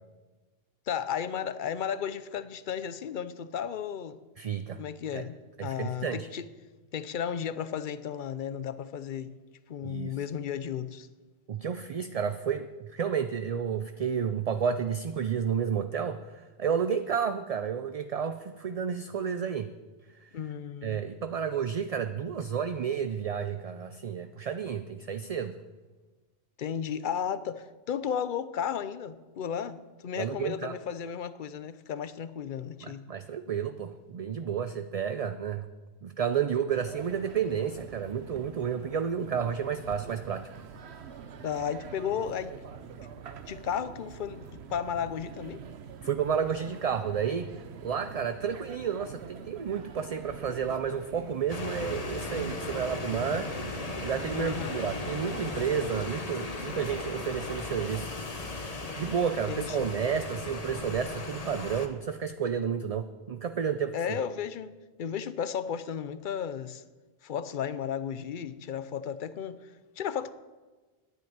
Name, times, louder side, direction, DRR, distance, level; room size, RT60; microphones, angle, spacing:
voice 1, 0.9-4.2 4.8-6.5 6.9-9.3 9.7-11.1 20.3-21.0 26.6-33.0 41.4-42.5 43.5-45.6 54.3-54.8 59.5-59.9 63.9-64.7 65.0-66.8 67.2-70.3, left 8 dB, 55° left, 0.7 m, -34 dB
voice 2, 4.4-4.8 5.1-5.3 5.6-6.3 9.8-10.1 11.5-19.7 20.2-20.3 20.8-25.5 30.2-30.8 32.8-35.7 36.0-40.5 46.0-47.5 47.8-53.5 54.0-58.1 59.0-63.9, right 7 dB, 50° right, 0.5 m, -31 dB
sound 1, 36.7-55.9, right 6 dB, 85° right, 1.1 m, -45 dB
sound 2, 51.5-61.9, left 3 dB, 40° left, 1.2 m, -37 dB
10.5 x 9.3 x 8.8 m
omnidirectional pair, 1.1 m